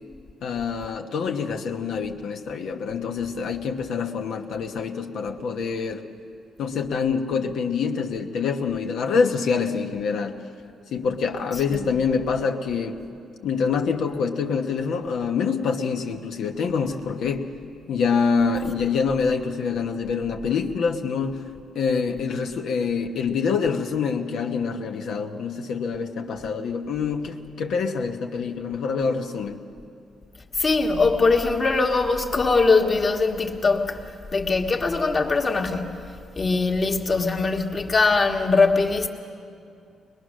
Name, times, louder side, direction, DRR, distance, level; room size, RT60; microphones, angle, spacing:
voice 1, 0.4-6.1 6.6-10.4 10.9-13.0 13.4-17.5 17.9-21.5 21.7-29.6, left 5 dB, 80° left, 1.2 m, -26 dB
voice 2, 30.6-34.0 34.3-39.1, left 3 dB, 35° left, 1.6 m, -21 dB
22.0 x 21.0 x 6.4 m
cardioid pair, 100°, 0 cm